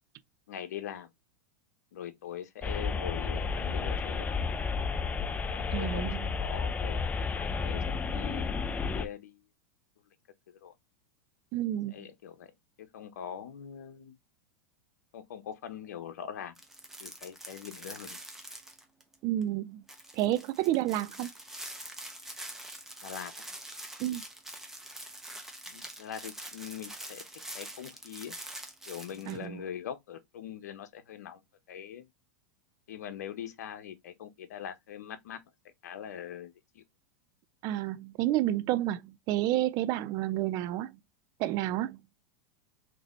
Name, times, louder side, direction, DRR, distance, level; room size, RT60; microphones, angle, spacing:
voice 1, 0.5-1.1 1.9-4.3 5.5-9.4 10.5-10.7 11.9-12.5 12.8-14.1 15.1-16.5 17.0-18.2 23.0-23.3 25.7-27.3 27.5-28.4 28.9-31.4 31.7-32.1 32.9-35.4 35.8-36.8, left 9 dB, 75° left, 0.9 m, -42 dB
sound 1, 2.6-9.1, left 5 dB, 15° left, 0.5 m, -32 dB
voice 2, 5.7-6.3 11.5-12.1 19.2-19.8 20.1-21.3 24.0-24.2 29.3-29.6 37.6-41.0 41.4-42.0, right 14 dB, 45° right, 0.4 m, -30 dB
sound 2, 16.6-19.1 19.4-19.5 19.9-29.4, right 1 dB, 5° right, 0.9 m, -45 dB
3.9 x 3.0 x 3.0 m
hypercardioid pair, 105°, 9 cm